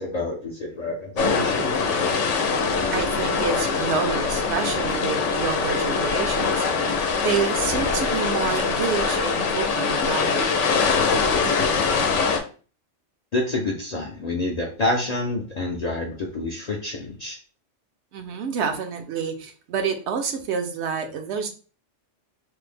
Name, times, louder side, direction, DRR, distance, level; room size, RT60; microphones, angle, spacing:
voice 1, 0.0-1.8 13.3-17.4, left 2 dB, 55° left, -1 dB, 0.4 m, -28 dB
sound 1, 1.2-12.4, left 5 dB, 80° left, 0.9 m, -23 dB
voice 2, 2.4-6.7 7.2-10.4 18.1-21.5, right 6 dB, 70° right, 5 dB, 0.8 m, -28 dB
3.3 x 2.0 x 3.3 m, 0.38 s
omnidirectional pair, 1.2 m